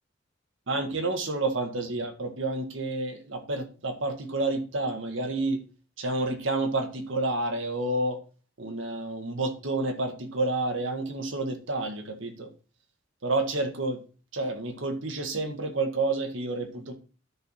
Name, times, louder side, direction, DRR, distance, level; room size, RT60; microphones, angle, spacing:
voice 1, 0.7-5.6 6.0-8.2 8.6-12.5 13.2-14.0 14.3-16.9, right 2 dB, 85° right, 5 dB, 1.8 m, -29 dB
10.5 x 4.6 x 5.6 m, 0.37 s
head